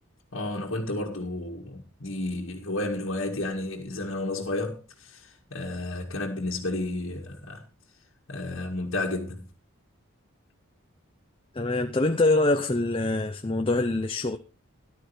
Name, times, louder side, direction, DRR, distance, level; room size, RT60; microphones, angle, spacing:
voice 1, 0.3-7.6 8.3-9.4, left 2 dB, 65° left, 2.0 m, -32 dB
voice 2, 11.5-14.4, left 2 dB, 25° left, 0.7 m, -24 dB
14.5 x 11.5 x 3.4 m
head